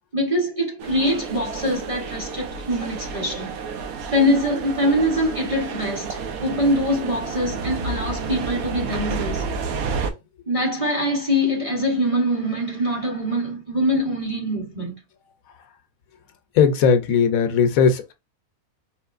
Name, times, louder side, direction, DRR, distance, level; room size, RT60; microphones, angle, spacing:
voice 1, 0.0-3.5 4.1-9.5 10.5-15.0, equal, 30° right, 0.9 m, -23 dB
sound 1, 0.8-10.1, right 5 dB, 80° right, 1.1 m, -30 dB
voice 2, 16.5-18.1, left 6 dB, 75° left, 1.1 m, -18 dB
4.4 x 3.1 x 2.4 m
omnidirectional pair, 1.5 m